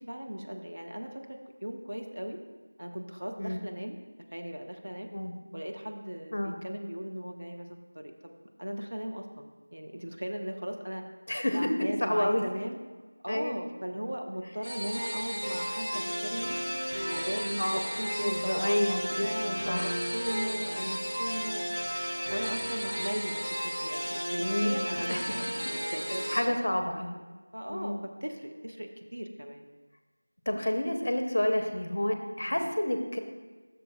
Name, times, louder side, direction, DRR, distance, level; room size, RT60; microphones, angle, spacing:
voice 1, 0.0-2.4 2.8-4.0 4.3-5.1 5.5-8.3 8.6-11.1 11.5-12.8 13.2-16.6 17.1-21.7 22.3-26.7 27.5-29.7 32.5-32.6, equal, 55° right, 3 dB, 0.7 m, -38 dB
voice 2, 11.3-11.7 12.0-12.4 13.3-13.6 14.1-14.2 17.6-17.8 18.2-19.9 24.4-25.4 26.3-27.2 27.7-28.0 30.5-33.2, left 1 dB, 35° left, 5 dB, 0.7 m, -30 dB
sound 1, 14.6-26.4, equal, 90° right, 2.4 m, -33 dB
13.0 x 6.5 x 2.3 m, 1.4 s
figure-of-eight pair, 180°, 0 cm